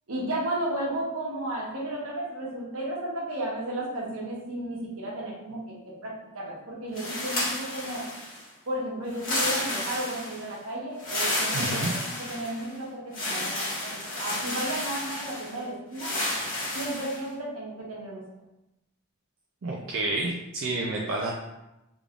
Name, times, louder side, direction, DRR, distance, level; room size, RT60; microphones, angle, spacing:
voice 1, 0.1-8.0 8.7-11.7 12.0-16.1 16.7-18.2, right 1 dB, 80° right, -4 dB, 1.1 m, -33 dB
sound 1, 6.9-8.4 9.1-10.5 11.0-12.7 13.1-15.5 15.9-17.2, left 1 dB, 40° left, 1.5 m, -31 dB
voice 2, 11.5-11.9 19.6-21.3, right 2 dB, 60° right, -2 dB, 0.4 m, -29 dB
3.6 x 3.5 x 2.4 m, 0.94 s
head